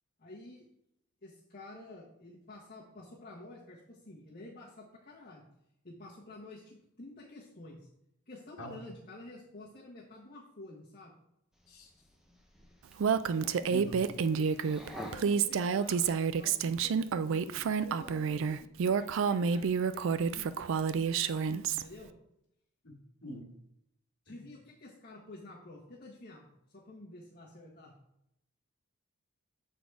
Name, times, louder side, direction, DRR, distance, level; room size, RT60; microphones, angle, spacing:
voice 1, 0.2-0.6 1.2-5.5 5.8-7.8 8.3-11.1 13.4-14.4 14.9-22.1 24.2-27.9, left 2 dB, 40° left, -6 dB, 1.3 m, -50 dB
sound 1, 11.5-16.5, equal, ahead, 0.7 m, -50 dB
Female speech woman speaking, 13.0-21.8, right 6 dB, 60° right, 0.3 m, -29 dB
voice 2, 22.8-23.5 24.3-24.4, equal, 75° left, -8 dB, 1.7 m, -44 dB
7.8 x 4.1 x 4.7 m, 0.80 s
head